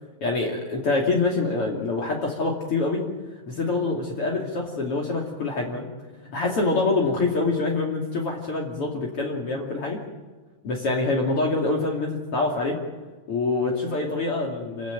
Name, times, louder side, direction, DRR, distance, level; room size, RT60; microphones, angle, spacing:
voice 1, 0.2-3.0 3.5-5.9 6.3-10.0 10.6-12.8 13.3-14.9, left 3 dB, 45° left, -1 dB, 3.4 m, -25 dB
28.0 x 15.5 x 9.2 m, 1.3 s
omnidirectional pair, 3.5 m